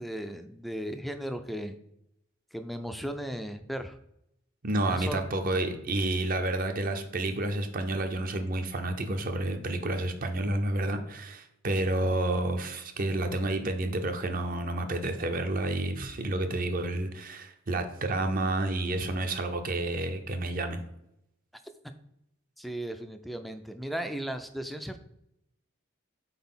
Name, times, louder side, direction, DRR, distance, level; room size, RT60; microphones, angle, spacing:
voice 1, 0.0-1.8 2.5-4.0 4.9-5.3 22.6-25.0, equal, ahead, 8 dB, 0.3 m, -36 dB
voice 2, 4.6-20.8, right 2 dB, 45° right, 7 dB, 0.6 m, -30 dB
4.2 x 4.0 x 5.5 m, 0.81 s
head